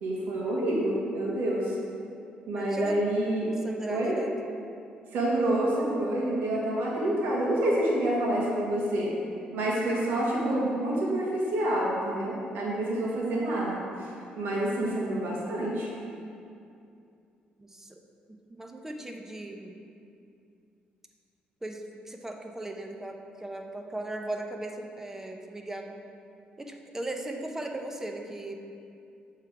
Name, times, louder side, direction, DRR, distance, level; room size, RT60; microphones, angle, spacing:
voice 1, 0.0-1.7 2.5-3.5 3.9-4.2 5.1-9.1 9.5-15.9, right 1 dB, 80° right, -4 dB, 1.5 m, -28 dB
voice 2, 2.5-3.0 3.6-4.3 17.6-18.0 18.3-19.8 21.6-26.0 26.6-28.6, right 1 dB, 15° right, 3 dB, 0.7 m, -38 dB
7.5 x 3.7 x 4.8 m, 2.5 s
cardioid pair, 80°, 3 cm